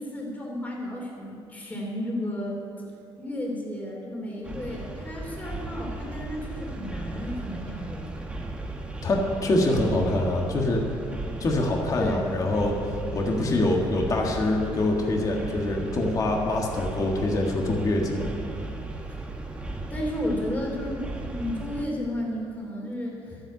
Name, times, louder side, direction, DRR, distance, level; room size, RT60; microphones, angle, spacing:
voice 1, 0.0-2.6 3.2-8.3 12.0-12.3 19.1-19.2 19.9-23.4, left 1 dB, 15° left, -2 dB, 3.0 m, -33 dB
sound 1, 4.4-21.9, right 2 dB, 10° right, 1.3 m, -36 dB
voice 2, 9.0-10.8 11.4-12.8 13.1-18.3, left 2 dB, 35° left, 0 dB, 1.7 m, -25 dB
12.5 x 8.9 x 8.3 m, 2.5 s
cardioid pair, 135°, 10 cm